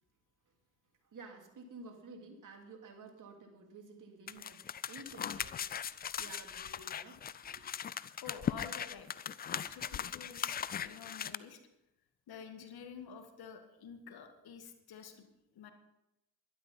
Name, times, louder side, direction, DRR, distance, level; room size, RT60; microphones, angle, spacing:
voice 1, 1.0-5.7 6.2-7.7, right 3 dB, 40° right, 3 dB, 2.9 m, -52 dB
sound 1, 4.3-11.4, left 8 dB, 20° left, 0.4 m, -39 dB
voice 2, 8.2-9.1 9.5-11.6 12.3-15.3 15.5-15.7, left 7 dB, 50° left, 7 dB, 2.1 m, -49 dB
12.0 x 12.0 x 5.5 m, 0.91 s
hypercardioid pair, 75°, 47 cm